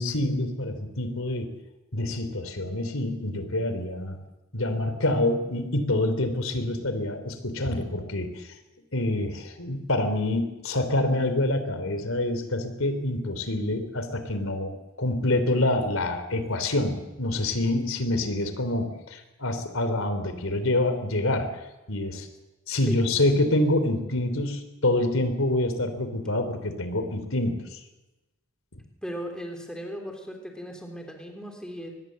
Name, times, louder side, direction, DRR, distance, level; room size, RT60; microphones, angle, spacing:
voice 1, 0.0-1.5 1.9-4.2 4.5-8.5 8.9-21.5 21.9-22.3 22.7-27.8, left 1 dB, 85° left, 9 dB, 3.2 m, -26 dB
voice 2, 29.0-32.0, equal, 5° left, 3 dB, 3.5 m, -37 dB
23.5 x 20.5 x 7.6 m, 1.0 s
head